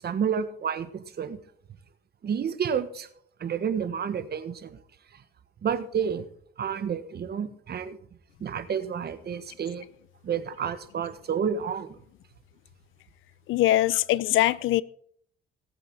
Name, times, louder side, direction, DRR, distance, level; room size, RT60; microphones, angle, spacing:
voice 1, 0.0-1.4 2.2-3.1 3.4-4.8 5.6-6.2 6.6-8.0 8.4-9.8 10.2-11.9, right 7 dB, 55° right, 1.5 m, -30 dB
voice 2, 13.5-14.8, left 15 dB, 85° left, 0.6 m, -22 dB
18.5 x 8.0 x 4.8 m
cardioid pair, 90°, 20 cm